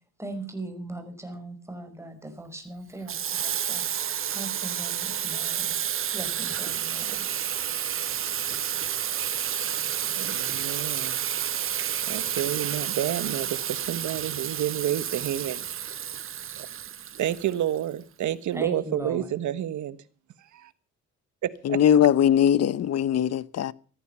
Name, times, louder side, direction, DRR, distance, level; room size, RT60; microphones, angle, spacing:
voice 1, 0.2-5.7 6.1-7.3 18.5-19.3, right 1 dB, 10° right, 5.3 m, -39 dB
Water tap faucet / Sink (filling or washing), 3.1-17.8, right 9 dB, 45° right, 0.7 m, -30 dB
voice 2, 10.2-11.2 12.1-15.6 17.2-20.0 20.5-20.7 21.4-21.8, right 11 dB, 70° right, 1.4 m, -29 dB
voice 3, 21.6-23.7, left 9 dB, 55° left, 0.9 m, -20 dB
16.5 x 14.0 x 5.6 m
cardioid pair, 90°, 30 cm